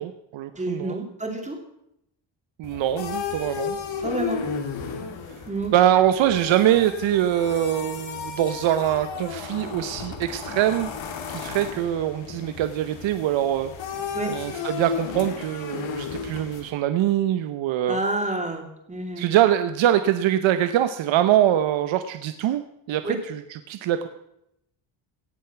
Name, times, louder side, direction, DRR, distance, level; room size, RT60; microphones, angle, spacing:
voice 1, 0.0-1.0 2.6-3.8 5.7-10.9 11.3-13.7 14.3-18.0 19.2-24.1, right 11 dB, 75° right, 10 dB, 0.9 m, -23 dB
voice 2, 0.6-1.6 4.0-4.4 5.5-5.7 14.1-14.4 17.9-19.2 23.0-23.2, right 2 dB, 15° right, 4 dB, 2.5 m, -29 dB
sound 1, 2.6-16.7, left 6 dB, 70° left, 2.1 m, -34 dB
18.0 x 7.1 x 5.8 m, 0.79 s
cardioid pair, 120°, 47 cm